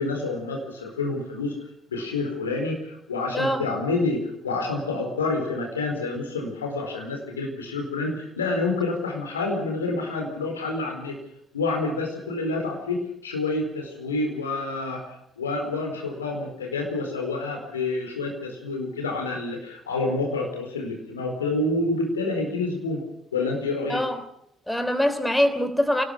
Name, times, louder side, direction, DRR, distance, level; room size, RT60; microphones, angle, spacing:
voice 1, 0.0-1.5 1.9-11.2 11.5-15.0 15.4-23.0 23.3-24.0, left 3 dB, 80° left, 2 dB, 4.4 m, -28 dB
voice 2, 24.7-26.0, equal, 5° left, 10 dB, 3.4 m, -23 dB
28.0 x 19.0 x 5.4 m, 0.74 s
figure-of-eight pair, 50°, 0 cm